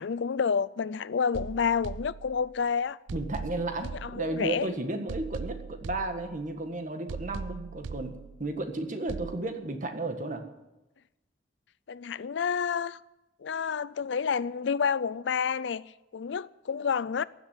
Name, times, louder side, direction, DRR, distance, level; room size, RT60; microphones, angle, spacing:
voice 1, 0.0-3.0 4.0-4.7 11.9-13.0 13.4-15.8 16.1-17.2, left 6 dB, 70° left, 0.4 m, -29 dB
sound 1, 1.3-2.6 3.1-4.6 5.1-6.6 7.1-8.6 9.1-9.4, right 5 dB, 85° right, 0.4 m, -40 dB
voice 2, 3.1-10.4, right 2 dB, 45° right, 1.6 m, -33 dB
15.5 x 7.6 x 9.3 m
head